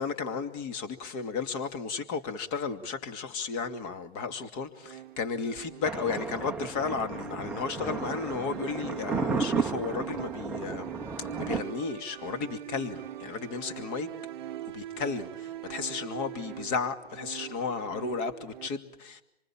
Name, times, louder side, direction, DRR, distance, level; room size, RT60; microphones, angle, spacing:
voice 1, 0.0-10.9 11.4-14.1 14.7-19.2, left 5 dB, 25° left, 2.6 m, -34 dB
sound 1, 4.8-18.7, right 12 dB, 45° right, 1.1 m, -43 dB
Thunder, 5.8-11.6, right 4 dB, 5° right, 1.1 m, -33 dB
27.0 x 25.5 x 7.3 m
hypercardioid pair, 135°, 33 cm